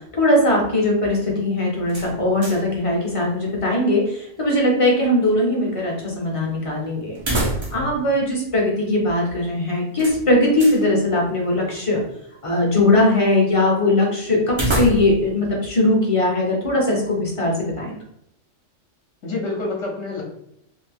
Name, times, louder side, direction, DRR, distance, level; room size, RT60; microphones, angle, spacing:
voice 1, 0.2-7.2 7.7-12.0 12.4-18.0, left 1 dB, 30° left, -2 dB, 0.8 m, -20 dB
sound 1, 1.9-2.8 3.1-3.2 7.1-8.0 8.3-8.4 10.0-10.8 14.5-15.3, right 1 dB, 35° right, 0.5 m, -26 dB
voice 2, 19.2-20.2, left 3 dB, 65° left, -2 dB, 1.1 m, -28 dB
2.8 x 2.5 x 3.4 m, 0.76 s
omnidirectional pair, 1.3 m